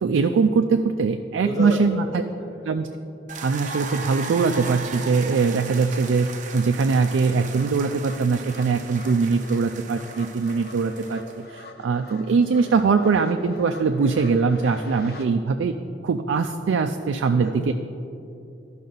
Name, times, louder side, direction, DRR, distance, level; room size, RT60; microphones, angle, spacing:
voice 1, 0.0-2.2 2.7-2.9 3.4-15.7 16.0-17.7, right 4 dB, 85° right, 5 dB, 0.4 m, -22 dB
voice 2, 1.4-1.8 17.4-17.7, equal, 20° left, -2 dB, 0.7 m, -30 dB
sound 1, 3.3-11.4, right 4 dB, 40° right, 0.6 m, -37 dB
sound 2, 5.6-15.3, left 2 dB, 55° left, 0.6 m, -45 dB
13.5 x 5.5 x 3.9 m, 2.7 s
head